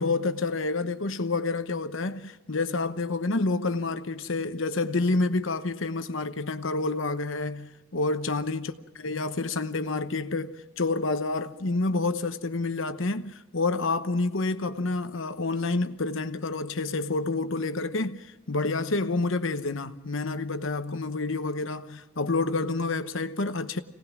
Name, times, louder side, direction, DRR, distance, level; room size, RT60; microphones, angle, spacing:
voice 1, 0.0-8.7 9.0-23.8, left 3 dB, 65° left, 1.0 m, -28 dB
26.0 x 18.5 x 6.1 m
head